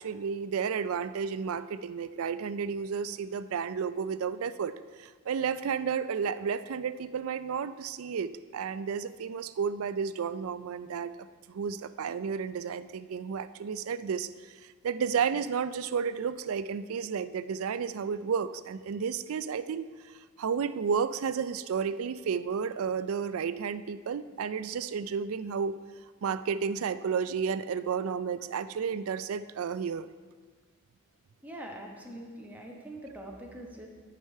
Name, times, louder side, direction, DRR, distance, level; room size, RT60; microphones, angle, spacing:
voice 1, 0.0-4.7 5.0-11.1 11.5-19.8 20.4-25.8 26.2-30.1, right 6 dB, 70° right, 14 dB, 0.4 m, -32 dB
voice 2, 31.4-33.9, right 1 dB, 5° right, -1 dB, 1.1 m, -43 dB
11.0 x 5.0 x 5.5 m, 1.5 s
head